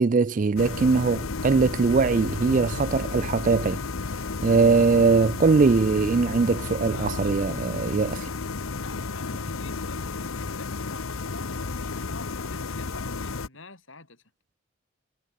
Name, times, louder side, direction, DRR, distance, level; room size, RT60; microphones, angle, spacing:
voice 1, 0.0-3.8 4.4-8.3, right 4 dB, 40° right, 0.4 m, -21 dB
sound 1, 0.6-13.5, left 4 dB, 85° left, 1.0 m, -32 dB
voice 2, 8.8-14.2, left 2 dB, 70° left, 6.5 m, -46 dB
head